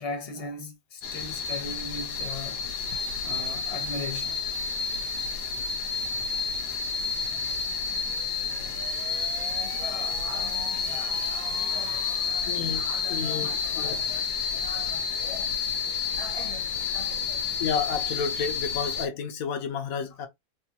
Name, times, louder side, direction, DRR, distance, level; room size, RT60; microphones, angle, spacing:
voice 1, 0.0-2.6 2.9-4.4 9.4-15.5 15.8-17.5, left 3 dB, 30° left, 0.7 m, -40 dB
sound 1, 1.0-19.1, left 5 dB, 90° left, 1.3 m, -30 dB
sound 2, 8.0-12.8, right 6 dB, 70° right, 1.3 m, -45 dB
voice 2, 12.5-14.0 17.6-20.3, left 6 dB, 70° left, 1.1 m, -31 dB
4.1 x 2.1 x 2.8 m
omnidirectional pair, 1.6 m